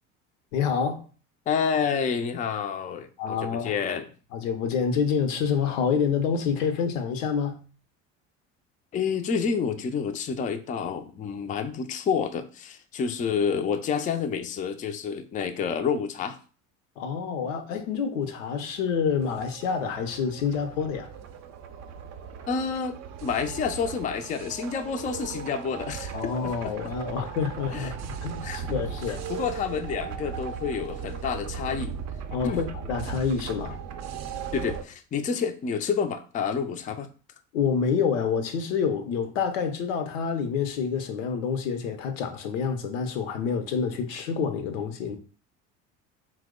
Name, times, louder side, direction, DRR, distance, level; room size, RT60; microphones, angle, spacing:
voice 1, 0.5-1.0 3.2-3.7 4.3-7.6 17.0-21.1 26.1-29.2 32.3-33.8 37.5-45.2, left 6 dB, 90° left, 0.6 m, -27 dB
voice 2, 1.5-4.1 8.9-16.4 22.5-26.8 27.7-27.9 28.4-28.8 29.3-31.9 32.4-32.6 34.5-37.1, left 6 dB, 20° left, 0.3 m, -29 dB
sound 1, 18.7-34.8, right 7 dB, 45° right, 0.5 m, -37 dB
3.0 x 2.1 x 3.6 m
hypercardioid pair, 75°, 37 cm